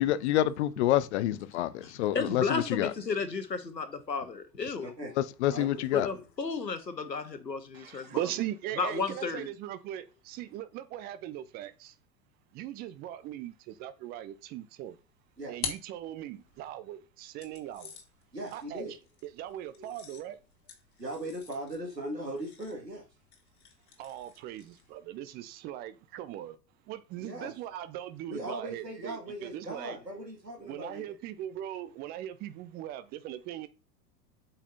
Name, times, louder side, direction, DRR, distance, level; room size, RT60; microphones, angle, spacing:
voice 1, 0.0-2.9 5.4-6.1, left 13 dB, 45° left, 0.6 m, -27 dB
voice 2, 1.8-4.9 5.9-8.2 8.8-9.5, left 4 dB, 85° left, 1.2 m, -33 dB
voice 3, 4.8-5.1 5.5-6.2 15.4-15.6 18.3-19.0 19.8-19.9 21.0-23.1 27.2-27.5 28.3-31.1, right 1 dB, 85° right, 2.2 m, -39 dB
voice 4, 7.7-12.0 12.5-15.0 15.5-18.0 18.5-18.9 19.2-20.4 24.0-26.6 26.9-30.0 30.6-33.7, right 12 dB, 20° right, 0.5 m, -39 dB
sound 1, 14.9-16.7 17.4-25.0, left 6 dB, 60° left, 1.9 m, -46 dB
8.3 x 5.6 x 2.7 m
figure-of-eight pair, 90°, 49 cm